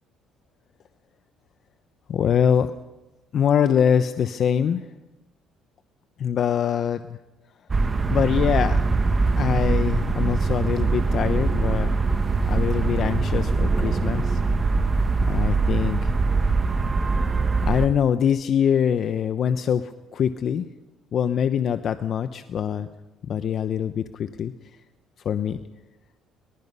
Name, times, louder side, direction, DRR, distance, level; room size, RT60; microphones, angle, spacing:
voice 1, 2.1-2.7 3.3-4.9 6.2-7.0 8.1-8.8 9.4-11.9 12.4-14.4 15.3-16.1 17.7-20.6 21.1-22.9 23.3-24.5 25.2-25.6, left 8 dB, 50° left, 10 dB, 0.8 m, -23 dB
sound 1, 7.7-17.9, right 3 dB, 25° right, 1.5 m, -22 dB
23.5 x 20.0 x 5.5 m, 1.0 s
cardioid pair, 115°, 0 cm